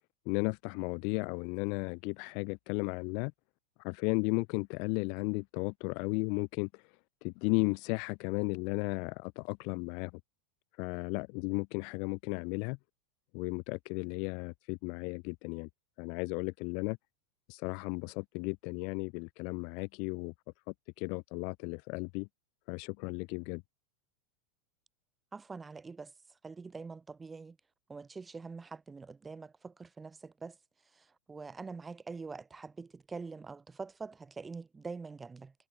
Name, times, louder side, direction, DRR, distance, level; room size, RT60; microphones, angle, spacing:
voice 1, 0.2-3.3 3.8-6.8 7.2-10.1 10.8-12.8 13.3-15.7 16.0-17.0 17.5-20.3 21.0-22.3 22.7-23.6, left 36 dB, 55° left, 1.4 m, -34 dB
voice 2, 25.3-26.1 26.4-27.6 27.9-30.6 30.9-35.5, right 4 dB, 15° right, 7.1 m, -45 dB
hypercardioid pair, 115°, 0 cm